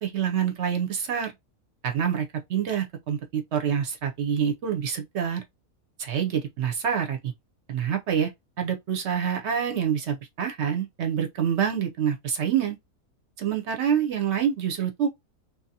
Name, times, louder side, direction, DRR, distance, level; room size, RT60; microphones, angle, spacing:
voice 1, 0.0-1.3 1.8-5.4 6.0-7.3 7.7-8.3 8.6-12.8 13.4-15.1, right 8 dB, 60° right, 0.8 m, -26 dB
2.7 x 2.3 x 2.7 m
omnidirectional pair, 1.5 m